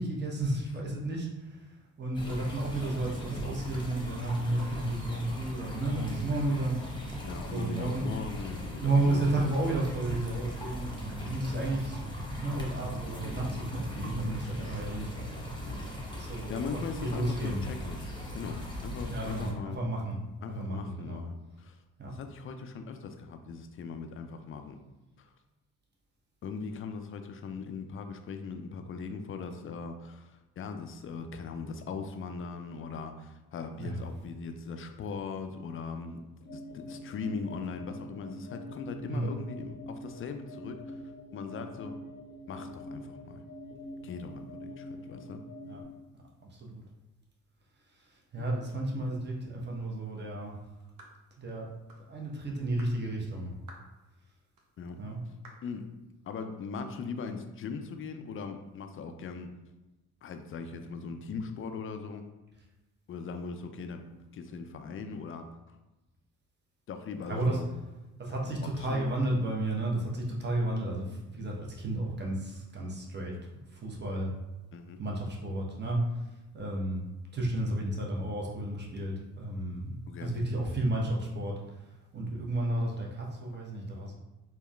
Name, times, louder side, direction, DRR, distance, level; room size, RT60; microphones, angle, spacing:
voice 1, 0.0-6.8 7.5-8.3 8.8-15.5 16.1-17.6 19.1-20.2 20.5-21.2 22.0-22.1 33.8-34.0 39.1-39.4 45.7-45.8 46.5-46.8 48.0-50.5 51.4-51.7 52.1-53.5 55.0-55.2 67.2-67.6 68.2-73.3 73.7-74.3 75.0-76.0 76.5-77.1 77.3-81.5 82.1-84.1, right 1 dB, 30° right, -2 dB, 0.9 m, -32 dB
sound 1, 2.1-19.5, equal, 10° left, 0.9 m, -39 dB
voice 2, 7.2-9.6 10.9-11.0 15.6-15.9 16.2-18.0 18.3-18.6 18.8-19.8 20.4-21.8 22.1-24.8 25.2-25.3 26.4-41.0 41.3-42.0 42.5-43.4 44.0-45.4 48.4-48.5 54.8-55.0 55.6-55.9 56.3-59.5 60.2-62.2 63.1-65.5 66.9-67.7 68.3-69.3 74.7-75.0 80.1-80.4, left 5 dB, 35° left, 7 dB, 0.4 m, -40 dB
sound 2, 36.4-45.8, equal, 80° left, 0.8 m, -45 dB
sound 3, 51.0-51.2 51.9-52.1 52.8-53.0 53.7-53.9 54.6-54.7 55.4-55.7, right 2 dB, 60° right, 0.7 m, -52 dB
3.6 x 2.2 x 2.3 m, 1.0 s
hypercardioid pair, 40°, 38 cm